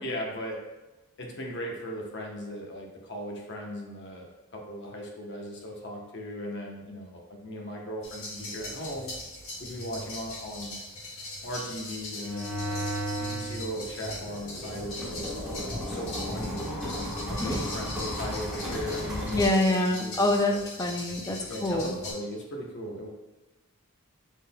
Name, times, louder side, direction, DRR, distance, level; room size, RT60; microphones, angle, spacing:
voice 1, 0.0-0.6 1.2-9.1 9.6-10.8 11.4-12.8 13.2-15.6 15.9-16.8 17.3-20.9 21.5-23.1, equal, 55° left, 0 dB, 0.9 m, -38 dB
sound 1, 8.0-22.1, left 1 dB, 70° left, 1.4 m, -40 dB
sound 2, 12.2-13.6 14.0-19.5, equal, ahead, 1.0 m, -34 dB
voice 2, 19.3-21.9, left 1 dB, 15° left, 3 dB, 0.4 m, -26 dB
6.1 x 3.7 x 2.2 m, 1.1 s
head